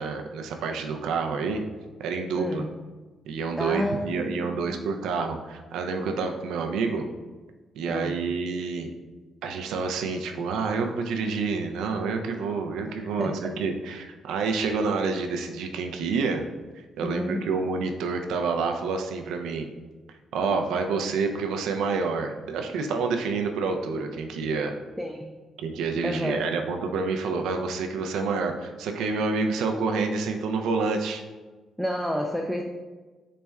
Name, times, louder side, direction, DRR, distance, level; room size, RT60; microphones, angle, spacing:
voice 1, 0.0-1.6 2.0-2.6 3.3-7.0 7.7-8.9 9.4-16.4 16.8-19.7 20.3-24.8 25.6-31.2, right 4 dB, 85° right, 4 dB, 0.4 m, -28 dB
voice 2, 2.4-2.7 3.6-4.8 7.9-8.2 12.9-13.5 17.0-17.5 25.0-25.4 26.0-26.5 31.8-32.6, equal, ahead, 2 dB, 0.3 m, -30 dB
4.1 x 2.2 x 3.4 m, 1.3 s
cardioid pair, 90°, 0 cm